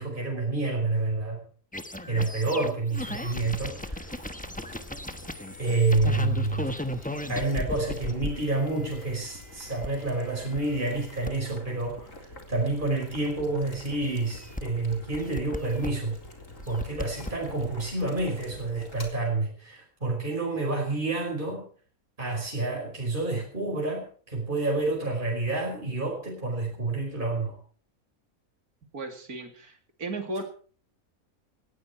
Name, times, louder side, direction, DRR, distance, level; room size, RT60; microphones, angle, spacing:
voice 1, 0.0-1.4 2.1-4.2 5.6-6.7 7.3-16.2 16.7-21.6 22.2-27.6, right 3 dB, 35° right, 0 dB, 5.5 m, -29 dB
sound 1, 1.7-9.9 10.5-11.3 13.9-14.6 15.1-15.9 16.6-17.3, left 1 dB, 5° left, 1.0 m, -35 dB
Boiling, 3.0-19.1, left 2 dB, 60° left, 4.3 m, -46 dB
voice 2, 28.9-30.4, right 2 dB, 85° right, 5 dB, 3.3 m, -35 dB
18.5 x 16.0 x 4.6 m, 0.44 s
omnidirectional pair, 1.5 m